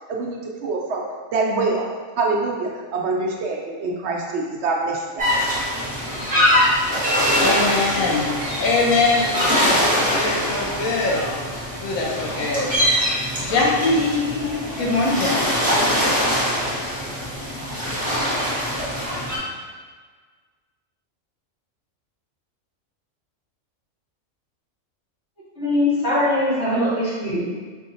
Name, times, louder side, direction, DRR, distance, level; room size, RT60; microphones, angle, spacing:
voice 1, 0.1-1.0 1.3-1.9 2.2-5.3, right 3 dB, 65° right, -1 dB, 0.8 m, -25 dB
sound 1, 5.2-19.4, equal, 5° right, 1.2 m, -23 dB
voice 2, 7.4-8.3 8.6-11.2 11.8-12.8 13.4-15.5, left 3 dB, 90° left, -3 dB, 1.2 m, -22 dB
voice 3, 25.6-27.4, left 1 dB, 55° left, -10 dB, 1.8 m, -21 dB
4.9 x 2.9 x 2.7 m, 1.5 s
omnidirectional pair, 1.3 m